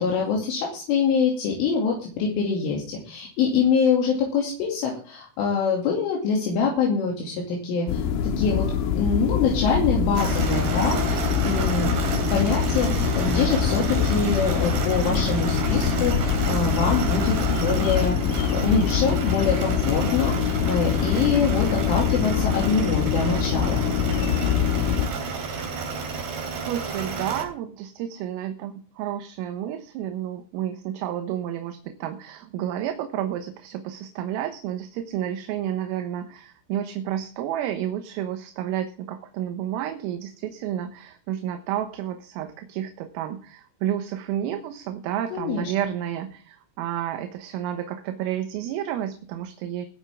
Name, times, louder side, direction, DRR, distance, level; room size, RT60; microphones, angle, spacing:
voice 1, 0.0-8.1 8.4-8.7 8.9-11.9 12.2-23.8 45.3-45.7, left 5 dB, 70° left, -2 dB, 5.0 m, -25 dB
sound 1, 7.9-25.1, left 8 dB, 90° left, 4.3 m, -24 dB
sound 2, 10.1-27.5, right 4 dB, 55° right, 5.2 m, -30 dB
voice 2, 26.7-49.9, right 11 dB, 80° right, 6 dB, 3.8 m, -31 dB
21.0 x 9.0 x 3.6 m, 0.43 s
omnidirectional pair, 6.0 m